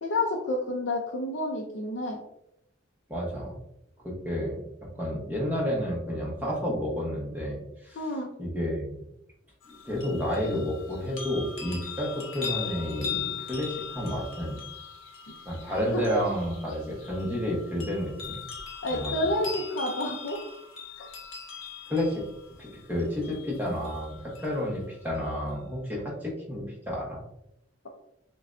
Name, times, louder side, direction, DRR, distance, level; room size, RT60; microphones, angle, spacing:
voice 1, 0.0-2.2 7.9-8.3 15.7-16.0 18.8-20.4 21.0-21.1, left 1 dB, 65° left, -1 dB, 0.6 m, -29 dB
voice 2, 3.1-3.5 4.0-4.6 4.9-8.1 8.4-8.9 9.7-14.6 15.4-18.4 18.9-19.1 21.9-22.2 22.6-27.2, equal, 10° right, -4 dB, 1.0 m, -31 dB
sound 1, 9.6-24.6 25.1-25.2, left 7 dB, 90° left, 1.0 m, -40 dB
6.7 x 2.2 x 2.6 m, 0.80 s
head